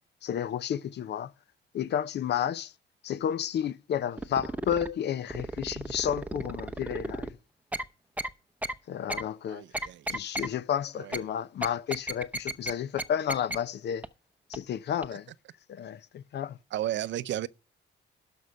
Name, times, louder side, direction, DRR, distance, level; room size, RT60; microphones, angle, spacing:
voice 1, 0.2-1.3 1.7-2.7 3.0-7.4 8.9-9.6 10.1-14.0 14.5-15.3 15.7-16.6, left 9 dB, 60° left, 0.6 m, -31 dB
sound 1, 4.2-4.9 5.3-7.3 7.7-7.8 8.2-8.3 8.6-8.7 9.1-9.2 9.7-10.5 11.1-11.2 11.6-12.7 13.0-13.1 13.3-13.6 14.0-14.1 14.5-14.6 15.0-15.1, right 1 dB, 5° right, 0.7 m, -33 dB
voice 2, 9.5-10.2 11.0-11.2 16.7-17.5, right 13 dB, 65° right, 0.6 m, -33 dB
12.0 x 5.5 x 6.2 m
cardioid pair, 90°, 20 cm